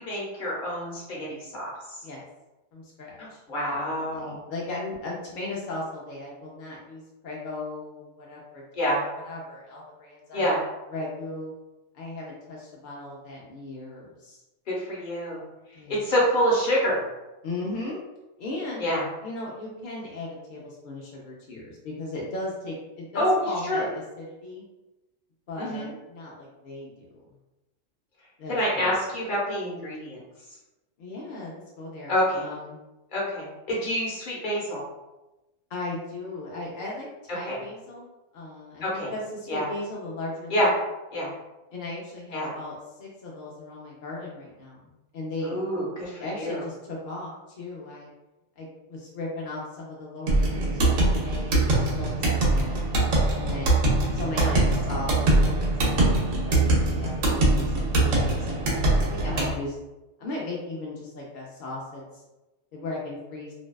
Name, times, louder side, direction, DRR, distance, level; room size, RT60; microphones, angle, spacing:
voice 1, 0.0-1.7 3.2-4.4 8.7-9.0 10.3-10.6 14.7-15.4 15.9-17.0 18.8-19.0 23.1-23.4 23.7-23.8 25.6-25.9 28.5-30.2 32.1-32.4 33.1-34.8 37.4-37.6 38.8-39.1 39.5-39.6 40.5-40.7 41.1-41.3 42.3-42.5 45.4-46.6 54.4-54.6, equal, 45° left, -5 dB, 0.8 m, -27 dB
voice 2, 2.7-3.4 3.7-10.5 10.9-11.5 11.9-14.4 15.7-16.1 17.4-18.0 18.4-18.9 19.2-24.7 25.5-27.4 28.4-28.9 31.0-32.8 35.7-38.1 38.3-40.7 41.7-45.6 46.2-47.3 47.6-48.1 48.6-53.7 54.1-59.8 60.2-62.0 62.7-63.5, left 2 dB, 65° left, -4 dB, 0.5 m, -37 dB
sound 1, 50.3-59.5, right 2 dB, 80° right, 1.1 m, -23 dB
2.6 x 2.2 x 2.2 m, 1.0 s
omnidirectional pair, 1.3 m